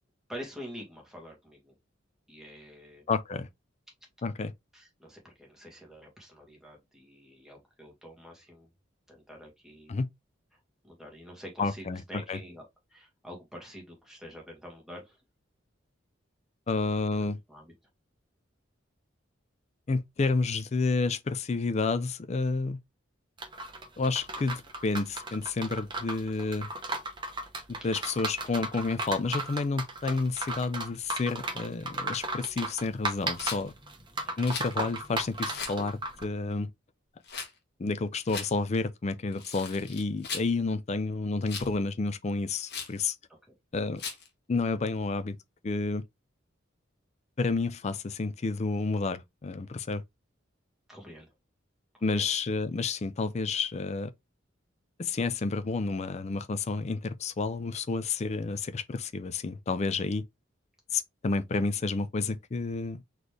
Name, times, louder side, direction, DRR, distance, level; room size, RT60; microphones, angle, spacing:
voice 1, 0.3-1.7 2.3-3.1 4.7-8.7 9.1-10.0 10.8-12.6 12.9-15.2 17.5-17.7 27.7-27.9 34.2-34.5 40.9-41.0 50.9-51.3 51.9-52.3, equal, ahead, 1.8 m, -46 dB
voice 2, 3.1-3.5 4.2-4.5 9.9-10.1 11.6-12.4 16.7-17.4 19.9-22.8 24.0-26.7 27.7-33.7 34.4-36.7 37.8-43.2 43.7-44.0 44.5-45.4 45.6-46.0 47.4-50.0 52.0-54.1 55.0-60.2 60.9-63.0, left 3 dB, 35° left, 0.4 m, -30 dB
sound 1, 23.4-36.2, right 2 dB, 25° right, 1.0 m, -35 dB
Rattle, 33.3-33.6 34.4-34.8 35.5-35.8 37.2-37.5 38.3-38.5 39.3-40.5 41.5-41.8 42.7-43.0 44.0-44.3, left 6 dB, 55° left, 1.2 m, -38 dB
4.2 x 3.1 x 3.3 m
head